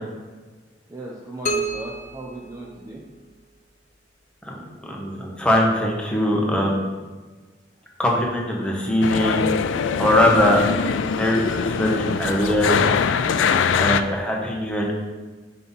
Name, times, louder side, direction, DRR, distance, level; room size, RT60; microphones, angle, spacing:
voice 1, 0.9-3.0, right 1 dB, 15° right, -3 dB, 0.6 m, -37 dB
sound 1, 1.5-3.4, right 1 dB, 40° left, 0.6 m, -30 dB
voice 2, 4.4-6.9 8.0-9.4 10.0-10.6 11.2-12.9 13.7-14.9, left 1 dB, 5° left, -2 dB, 1.1 m, -21 dB
sound 2, 9.0-14.0, left 6 dB, 85° left, 0.4 m, -22 dB
5.5 x 5.4 x 4.1 m, 1.3 s
head